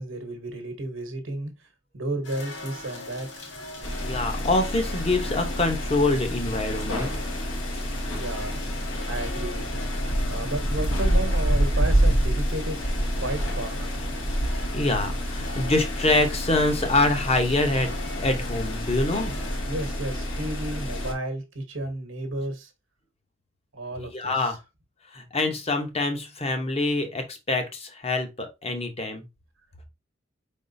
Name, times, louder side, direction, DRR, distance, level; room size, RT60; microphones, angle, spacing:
voice 1, 0.0-1.5 1.9-3.5 8.1-8.6 9.0-9.9 10.3-12.8 13.2-14.0 19.7-22.7 23.7-24.6, right 1 dB, 75° right, 1.1 m, -33 dB
sound 1, 2.3-19.6, right 1 dB, 60° left, 1.4 m, -29 dB
sound 2, 3.8-21.1, left 1 dB, 80° left, 1.2 m, -31 dB
voice 2, 4.0-7.1 14.7-17.9 18.2-19.3 24.0-24.6 25.1-29.2, left 2 dB, 30° left, 0.8 m, -25 dB
4.7 x 3.6 x 2.6 m
head